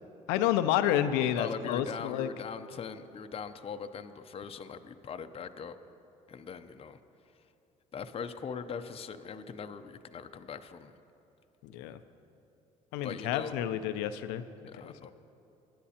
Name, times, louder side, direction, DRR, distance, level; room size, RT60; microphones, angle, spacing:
voice 1, 0.3-2.3 11.6-12.0 12.9-14.4 14.8-14.9, left 11 dB, 85° left, 11 dB, 0.5 m, -29 dB
voice 2, 1.3-5.8 6.3-7.0 7.9-10.9 13.0-13.6 14.7-15.1, left 6 dB, 35° left, 8 dB, 0.6 m, -41 dB
21.0 x 10.5 x 2.9 m, 2.8 s
supercardioid pair, 75°, 16 cm